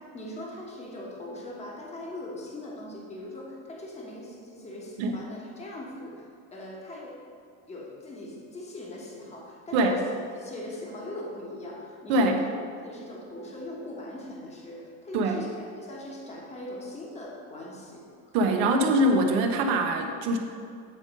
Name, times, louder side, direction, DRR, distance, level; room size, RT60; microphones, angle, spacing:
voice 1, 0.0-7.2 7.7-10.1 10.3-12.5 12.8-18.4, left 1 dB, 20° left, -2 dB, 1.2 m, -40 dB
voice 2, 12.1-12.4 15.1-15.3 18.3-20.4, right 1 dB, 75° right, 4 dB, 1.0 m, -23 dB
8.9 x 3.7 x 5.2 m, 2.4 s
cardioid pair, 130°, 35 cm